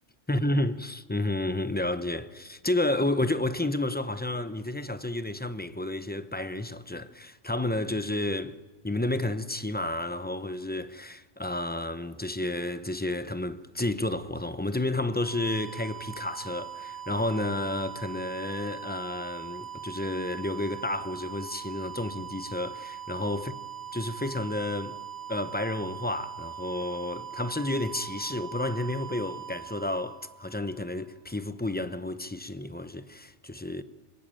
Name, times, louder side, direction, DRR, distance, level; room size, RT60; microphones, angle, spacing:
voice 1, 0.3-8.6 8.8-23.6 23.9-25.0 25.3-33.8, left 1 dB, 10° left, 0.6 m, -31 dB
sound 1, 15.0-30.8, right 9 dB, 15° right, 4.3 m, -41 dB
25.0 x 21.0 x 9.0 m
omnidirectional pair, 1.3 m